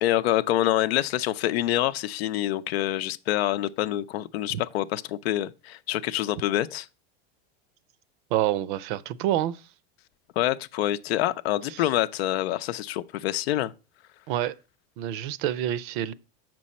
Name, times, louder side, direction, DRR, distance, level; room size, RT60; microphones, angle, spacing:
voice 1, 0.0-6.9 10.4-13.7, left 14 dB, 80° left, 0.7 m, -26 dB
voice 2, 8.3-9.6 11.7-11.9 14.3-14.6 15.0-16.1, right 12 dB, 55° right, 0.6 m, -27 dB
7.6 x 6.1 x 4.2 m
supercardioid pair, 155°, 31 cm